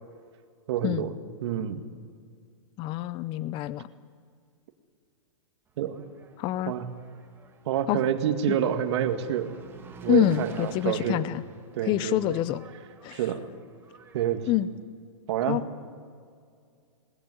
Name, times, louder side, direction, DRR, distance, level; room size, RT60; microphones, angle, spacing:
voice 1, 0.7-1.1 1.4-1.8 5.8-6.0 6.7-6.8 7.7-9.5 10.0-11.2 11.8-12.2 13.1-13.4 14.1-14.4 15.3-15.6, right 10 dB, 60° right, 7 dB, 2.0 m, -27 dB
voice 2, 2.8-3.9 6.4-6.7 7.9-8.0 8.5-8.6 10.1-11.4 11.8-12.6 13.0-13.3 14.5-14.7 15.5-15.6, left 13 dB, 30° left, 17 dB, 0.7 m, -26 dB
Engine, 5.7-14.5, right 3 dB, 15° right, 2.4 m, -50 dB
21.0 x 18.5 x 9.8 m, 2.2 s
hypercardioid pair, 140°, 16 cm